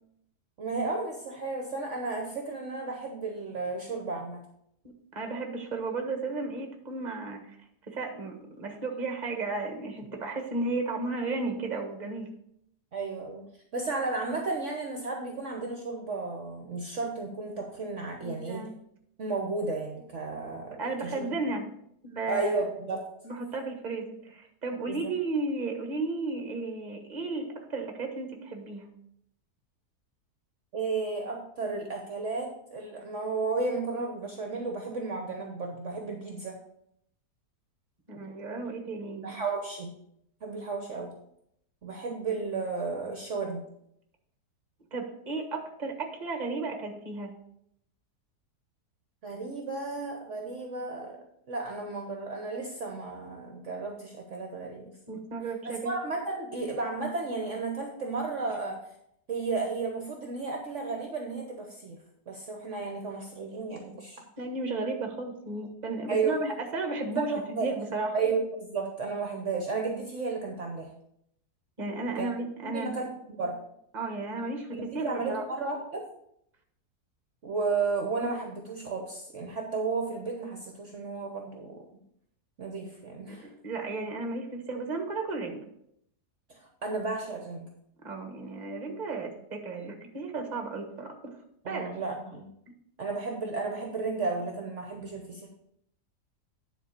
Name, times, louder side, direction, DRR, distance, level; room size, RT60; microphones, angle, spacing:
voice 1, 0.6-4.4 12.9-13.4 13.7-18.6 19.2-21.3 22.3-23.1 24.9-25.1 30.7-36.6 39.2-39.9 40.4-41.1 41.8-43.7 49.2-51.2 51.5-54.9 55.6-58.8 59.3-62.0 62.3-64.2 66.1-66.3 67.1-67.7 68.1-70.9 72.2-72.3 72.6-73.6 74.7-76.1 77.4-81.8 82.6-83.5 86.5-87.7 91.6-92.5 93.0-95.5, right 3 dB, 50° right, 2 dB, 1.3 m, -33 dB
voice 2, 4.8-7.4 7.9-12.3 18.2-18.7 20.8-21.7 22.0-22.6 23.2-28.9 38.1-39.2 44.9-47.3 55.1-55.9 64.4-68.1 71.8-72.9 73.9-74.7 74.9-75.4 83.3-83.4 83.6-85.6 88.0-91.4 91.7-91.9, right 3 dB, 30° right, 4 dB, 1.4 m, -34 dB
10.0 x 4.1 x 6.6 m, 0.74 s
omnidirectional pair, 1.7 m